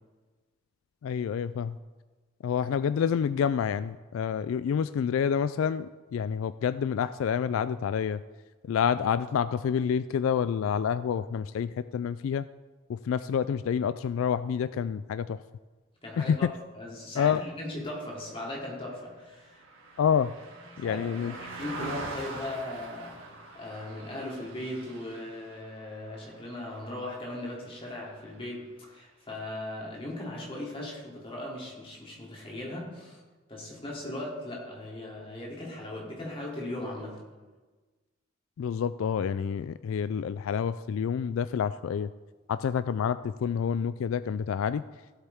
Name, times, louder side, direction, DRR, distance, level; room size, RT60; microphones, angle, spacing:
voice 1, 1.0-1.8 2.4-8.2 8.6-12.5 12.9-15.4 16.2-16.5 17.2-17.4 20.0-20.3 20.8-21.3 38.6-42.1 42.5-44.8, left 7 dB, 75° left, 14 dB, 0.3 m, -28 dB
voice 2, 16.0-19.6 20.8-23.2 23.5-33.2 33.5-37.2, left 1 dB, 25° left, -3 dB, 2.8 m, -38 dB
Car passing by, 18.2-27.7 28.1-28.3, right 2 dB, 65° right, 2.2 m, -44 dB
16.0 x 8.2 x 3.5 m, 1.3 s
head